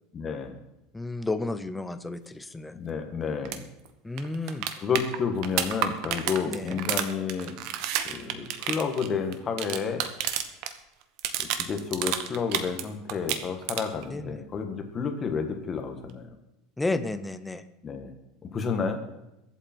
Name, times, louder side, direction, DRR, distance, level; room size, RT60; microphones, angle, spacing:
voice 1, 0.1-0.6 2.7-3.7 4.8-7.6 8.1-10.1 11.4-16.3 17.8-18.1 18.4-19.0, left 6 dB, 20° left, 6 dB, 1.6 m, -30 dB
voice 2, 0.9-2.8 4.0-4.7 6.5-6.8 14.1-14.4 16.8-17.6, left 2 dB, 5° left, 11 dB, 0.7 m, -32 dB
sound 1, 3.4-3.6 3.9-4.0 4.2-10.7 11.0-12.8 13.1-14.0 16.1-16.2, right 10 dB, 50° right, 1.2 m, -30 dB
22.5 x 8.2 x 4.5 m, 0.91 s
cardioid pair, 170°, 0 cm